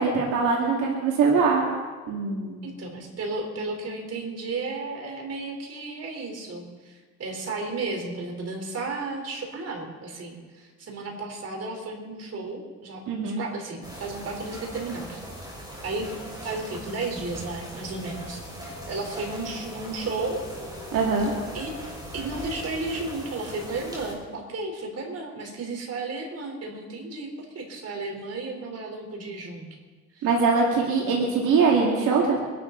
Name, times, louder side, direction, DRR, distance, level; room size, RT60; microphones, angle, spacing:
voice 1, 0.0-1.6 2.1-2.6 13.1-13.4 20.9-21.3 30.2-32.4, right 4 dB, 85° right, -2 dB, 2.6 m, -22 dB
voice 2, 2.6-15.2 15.8-16.1 16.4-20.5 21.5-21.7 22.1-29.7 30.1-30.3, right 3 dB, 55° right, 2 dB, 4.1 m, -33 dB
sound 1, 13.8-24.1, equal, 15° right, 6.1 m, -39 dB
24.5 x 12.0 x 4.0 m, 1.4 s
cardioid pair, 90°, 30 cm